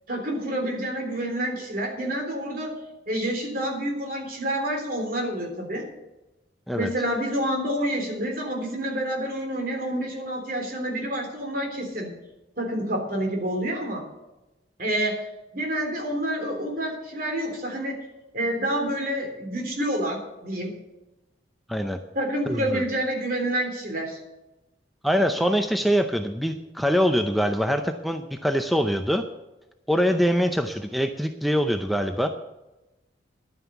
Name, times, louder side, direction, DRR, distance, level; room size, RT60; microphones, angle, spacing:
voice 1, 0.1-2.8 3.1-5.9 6.7-12.1 12.6-14.1 14.8-15.2 15.5-18.0 18.3-20.7 22.1-24.2, right 1 dB, 50° right, 2 dB, 3.5 m, -28 dB
voice 2, 21.7-22.0 22.5-22.8 25.0-29.2 29.9-32.3, equal, ahead, 6 dB, 0.6 m, -24 dB
11.5 x 9.4 x 7.0 m, 1.0 s
head